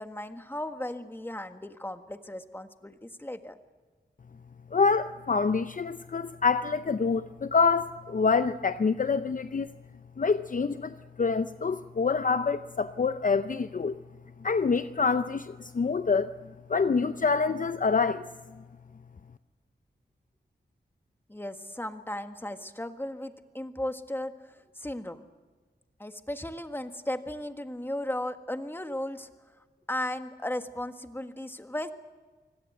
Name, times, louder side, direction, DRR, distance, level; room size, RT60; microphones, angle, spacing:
voice 1, 0.0-3.6 21.3-25.2 26.0-29.3 29.9-31.9, left 1 dB, 10° left, 7 dB, 1.6 m, -36 dB
voice 2, 4.7-9.7 10.2-14.0 14.4-16.3 16.7-18.3, left 5 dB, 45° left, 11 dB, 0.6 m, -26 dB
24.0 x 17.5 x 8.0 m, 1.4 s
cardioid pair, 55°, 19 cm